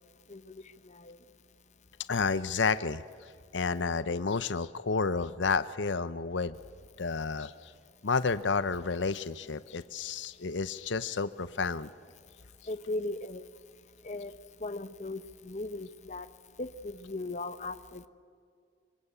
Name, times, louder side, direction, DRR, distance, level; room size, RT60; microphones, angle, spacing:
voice 1, 0.3-1.2 12.7-13.4 14.0-14.3 14.6-16.3 16.6-18.1, left 2 dB, 40° left, 12 dB, 1.0 m, -38 dB
voice 2, 2.1-3.0 3.5-6.6 7.0-7.7 8.0-11.9, left 4 dB, 80° left, 14 dB, 0.7 m, -30 dB
25.0 x 24.5 x 8.3 m, 2.2 s
head